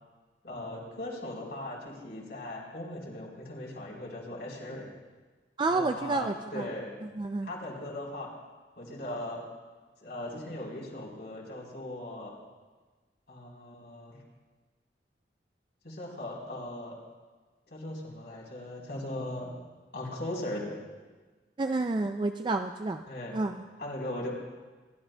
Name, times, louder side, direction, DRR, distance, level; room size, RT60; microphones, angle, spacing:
voice 1, 0.4-4.9 5.7-6.9 7.4-8.3 8.8-9.4 10.0-12.3 13.3-14.2 15.8-17.0 17.7-19.5 19.9-20.7 23.1-23.4 23.8-24.3, left 1 dB, 65° left, -4 dB, 3.8 m, -38 dB
voice 2, 5.6-6.7 7.0-7.5 21.6-23.0 23.3-23.6, right 3 dB, 25° right, 6 dB, 0.3 m, -30 dB
26.5 x 12.0 x 2.2 m, 1.4 s
head